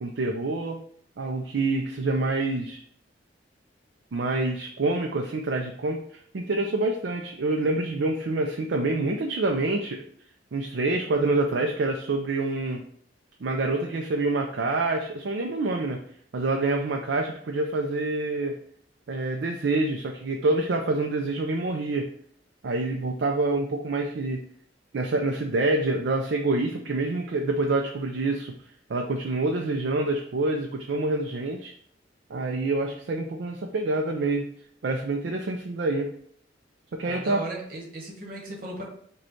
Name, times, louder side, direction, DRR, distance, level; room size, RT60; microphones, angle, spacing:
voice 1, 0.0-0.8 1.2-2.8 4.1-6.0 6.3-10.0 10.5-12.8 13.4-16.0 16.3-18.6 19.1-22.1 22.6-24.4 24.9-28.5 28.9-31.7 32.3-34.5 34.8-36.1 36.9-37.4, right 2 dB, 65° right, 2 dB, 0.4 m, -26 dB
voice 2, 37.0-38.9, right 2 dB, 50° right, -1 dB, 1.3 m, -36 dB
5.0 x 2.3 x 4.4 m, 0.63 s
head